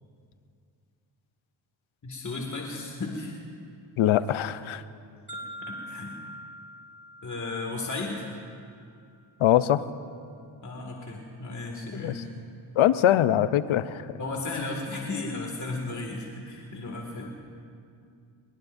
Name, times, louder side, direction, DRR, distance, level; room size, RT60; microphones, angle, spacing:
voice 1, 2.0-3.3 5.7-6.1 7.2-8.2 10.6-12.3 14.2-17.3, left 3 dB, 40° left, 0 dB, 2.2 m, -34 dB
voice 2, 4.0-4.8 9.4-9.8 12.0-12.2 12.8-14.1, left 12 dB, 85° left, 14 dB, 0.7 m, -22 dB
sound 1, 5.3-9.3, equal, 25° left, 3.6 m, -44 dB
23.5 x 22.5 x 2.6 m, 2.4 s
cardioid pair, 60°, 47 cm